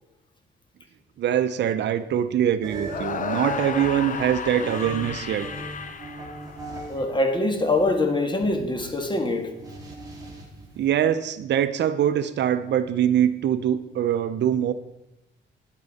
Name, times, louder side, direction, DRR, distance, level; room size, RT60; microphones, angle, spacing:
voice 1, 1.2-5.5 10.8-14.7, right 10 dB, 60° right, 12 dB, 0.6 m, -23 dB
sound 1, 2.6-7.0 7.3-10.7, right 2 dB, 20° right, 3.1 m, -39 dB
sound 2, 2.8-7.0, left 6 dB, 40° left, 0.8 m, -32 dB
voice 2, 6.9-9.5, left 2 dB, 25° left, 5 dB, 1.6 m, -24 dB
11.0 x 8.5 x 4.1 m, 0.91 s
cardioid pair, 95°, 20 cm